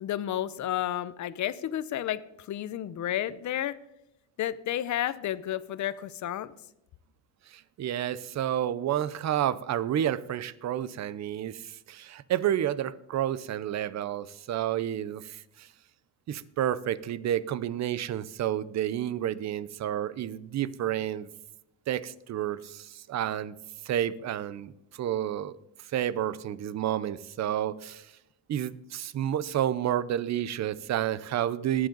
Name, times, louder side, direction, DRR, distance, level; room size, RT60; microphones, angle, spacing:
voice 1, 0.0-3.7 4.4-6.5, left 12 dB, 40° left, 16 dB, 0.8 m, -31 dB
voice 2, 7.5-15.7 16.3-21.3 21.9-23.6 23.8-25.6 25.9-28.1 28.5-31.9, right 11 dB, 40° right, 18 dB, 0.7 m, -30 dB
20.5 x 7.9 x 3.9 m, 0.85 s
cardioid pair, 120°, 44 cm